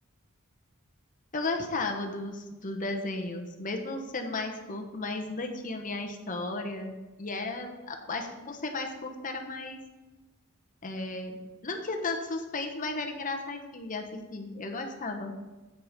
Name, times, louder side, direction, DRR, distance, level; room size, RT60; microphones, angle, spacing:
voice 1, 1.3-9.8 10.8-15.3, left 3 dB, 40° left, 4 dB, 1.2 m, -34 dB
7.9 x 7.8 x 5.1 m, 1.2 s
head